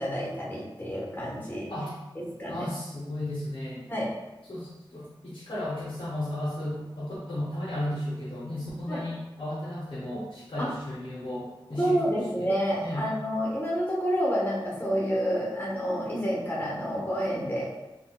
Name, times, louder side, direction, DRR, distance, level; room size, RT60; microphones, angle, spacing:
voice 1, 0.0-1.7 2.4-2.7 3.9-4.1 8.9-9.0 10.6-10.7 11.8-17.6, equal, 20° left, -5 dB, 1.1 m, -29 dB
voice 2, 2.5-3.8 4.5-12.5 12.8-13.1, left 1 dB, 80° left, -6 dB, 0.8 m, -34 dB
4.1 x 2.4 x 2.2 m, 1.0 s
wide cardioid pair, 85°, 9 cm